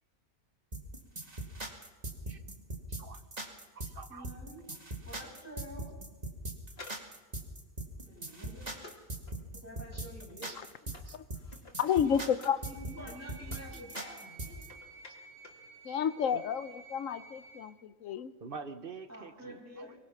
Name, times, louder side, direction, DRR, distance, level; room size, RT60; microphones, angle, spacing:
sound 1, 0.7-14.7, right 2 dB, 25° right, 2.3 m, -40 dB
voice 1, 2.9-3.2 3.7-4.3 10.4-10.6 11.0-11.2 12.7-12.8 13.7-14.1 16.3-16.4 18.4-19.9, right 4 dB, 40° right, 9 dB, 1.1 m, -47 dB
voice 2, 4.1-4.6 5.0-5.9 8.0-8.8 9.5-10.6 12.0-12.3 12.7-14.5 19.1-19.9, equal, 10° right, -3 dB, 7.6 m, -48 dB
sound 2, 6.7-12.7 13.0-15.7 15.9-16.0, left 2 dB, 40° left, 2.4 m, -54 dB
voice 3, 11.8-12.6 15.8-18.3, left 8 dB, 65° left, 13 dB, 1.1 m, -31 dB
sound 3, 12.6-17.7, right 4 dB, 90° right, 4.3 m, -53 dB
24.0 x 19.5 x 5.9 m, 1.2 s
omnidirectional pair, 1.6 m